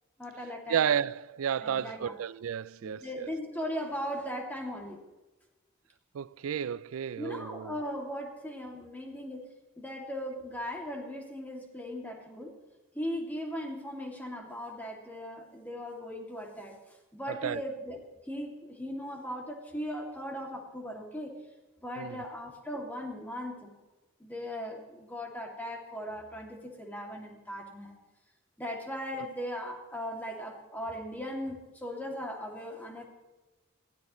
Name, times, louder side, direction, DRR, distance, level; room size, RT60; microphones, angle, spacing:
voice 1, 0.2-0.8 1.6-2.2 2.8-5.0 7.2-9.5 9.8-12.5 12.9-18.0 18.3-21.3 21.8-23.7 24.2-28.0 28.6-33.0, equal, 10° left, 2.5 m, -38 dB
voice 2, 0.7-3.3 6.1-7.7 17.3-17.6 22.0-22.2, right 8 dB, 85° right, 0.4 m, -32 dB
22.0 x 16.5 x 3.1 m
head